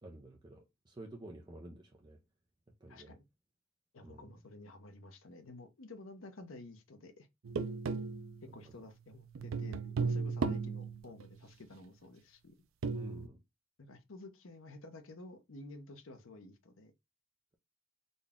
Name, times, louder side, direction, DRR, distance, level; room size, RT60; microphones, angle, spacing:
voice 1, 0.0-2.2 2.8-3.1 4.0-4.3 12.9-13.4, right 1 dB, 20° right, 0.4 m, -51 dB
voice 2, 2.9-3.2 3.9-7.3 8.5-12.5 13.8-16.9, left 2 dB, 75° left, 0.8 m, -52 dB
sound 1, 7.4-8.8 9.2-11.4 12.8-13.3, right 4 dB, 75° right, 0.5 m, -36 dB
3.9 x 2.2 x 3.5 m
head